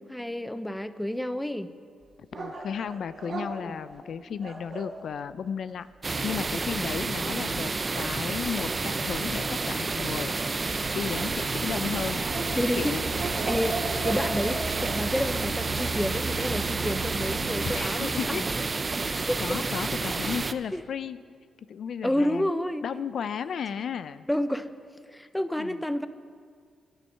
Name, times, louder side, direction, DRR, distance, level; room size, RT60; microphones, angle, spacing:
voice 1, 0.0-1.7 3.6-3.8 7.2-7.4 12.5-18.7 19.3-19.6 20.2-20.3 20.7-20.8 22.0-22.8 24.3-24.7 25.1-26.1, left 1 dB, 5° left, 12 dB, 0.6 m, -30 dB
sound 1, 2.3-5.0 10.3-11.2 12.2-15.0, right 3 dB, 50° right, 2.5 m, -36 dB
voice 2, 2.4-10.3 10.9-12.2 12.8-13.0 17.6-18.4 19.0-21.2 21.7-22.5 22.8-24.3 25.6-25.8, left 7 dB, 70° left, 14 dB, 0.4 m, -34 dB
sound 2, 6.0-20.5, right 3 dB, 35° right, 0.6 m, -30 dB
sound 3, 11.0-17.9, right 5 dB, 80° right, 1.3 m, -37 dB
14.5 x 10.0 x 5.6 m, 2.1 s
cardioid pair, 80°, 0 cm